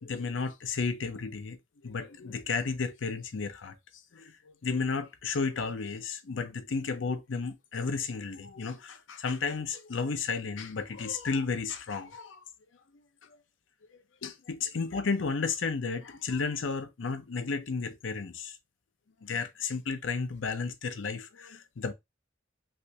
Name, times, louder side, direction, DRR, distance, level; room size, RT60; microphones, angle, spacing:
voice 1, 0.0-1.6 1.8-3.8 4.1-12.4 14.2-18.6 19.2-21.9, left 4 dB, 80° left, 0.6 m, -33 dB
3.3 x 2.5 x 2.8 m
head